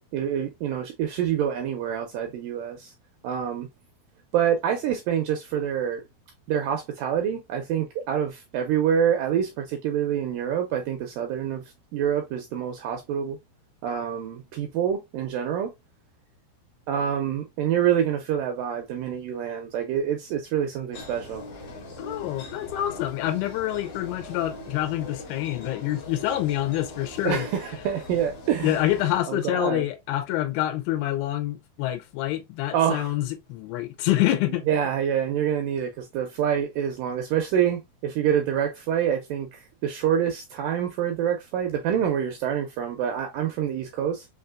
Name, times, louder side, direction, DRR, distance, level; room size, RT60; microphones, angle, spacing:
voice 1, 0.1-2.9 3.2-3.7 4.3-6.0 6.5-11.6 11.9-13.4 13.8-15.7 16.9-21.4 27.2-28.8 29.3-29.8 32.7-33.1 34.7-44.3, right 9 dB, 80° right, 2.0 m, -26 dB
sound 1, 20.9-29.2, left 2 dB, 55° left, 1.9 m, -41 dB
voice 2, 22.0-27.5 28.6-34.6, left 14 dB, 80° left, 2.6 m, -27 dB
5.8 x 2.7 x 2.3 m
omnidirectional pair, 4.5 m